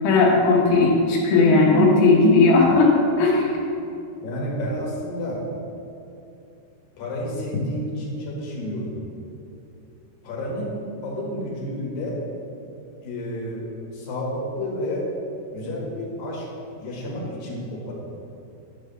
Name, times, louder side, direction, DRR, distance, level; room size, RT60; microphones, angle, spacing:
voice 1, 0.0-3.5, left 3 dB, 85° left, -3 dB, 1.8 m, -17 dB
voice 2, 4.2-5.4 7.0-9.0 10.2-12.2 13.0-15.1 15.5-16.5 16.8-17.9, left 1 dB, 60° left, -4 dB, 2.6 m, -30 dB
9.8 x 3.3 x 6.8 m, 2.7 s
omnidirectional pair, 5.5 m